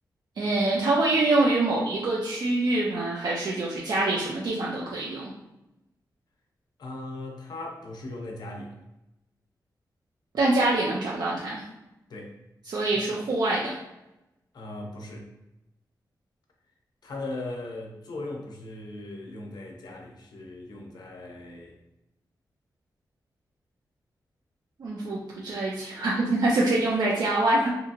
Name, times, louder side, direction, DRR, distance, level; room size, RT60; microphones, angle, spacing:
voice 1, 0.4-5.3 10.3-11.6 12.7-13.7 24.8-27.7, right 2 dB, 70° right, -4 dB, 0.5 m, -25 dB
voice 2, 6.8-8.8 12.1-12.4 12.7-12.9 14.5-15.3 17.0-21.7, left 2 dB, 70° left, 1 dB, 0.6 m, -38 dB
2.7 x 2.7 x 2.5 m, 0.94 s
wide cardioid pair, 110°, 7 cm